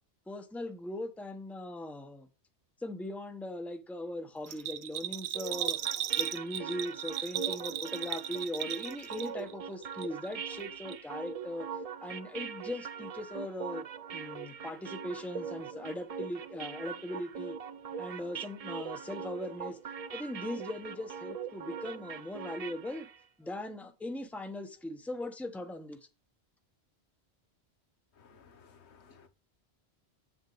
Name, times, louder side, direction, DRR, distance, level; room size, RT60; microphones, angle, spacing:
voice 1, 0.3-2.3 2.8-5.8 6.2-11.7 12.0-13.8 14.1-17.5 18.0-19.8 20.1-23.1 23.4-26.0, left 1 dB, ahead, 0.9 m, -39 dB
Bell, 4.4-9.5 9.8-10.6 10.9-11.0, right 11 dB, 90° right, 0.9 m, -36 dB
sound 1, 5.3-23.2, right 6 dB, 55° right, 0.4 m, -42 dB
voice 2, 28.2-29.3, left 5 dB, 80° left, 1.3 m, -58 dB
8.2 x 8.1 x 3.1 m
omnidirectional pair, 1.1 m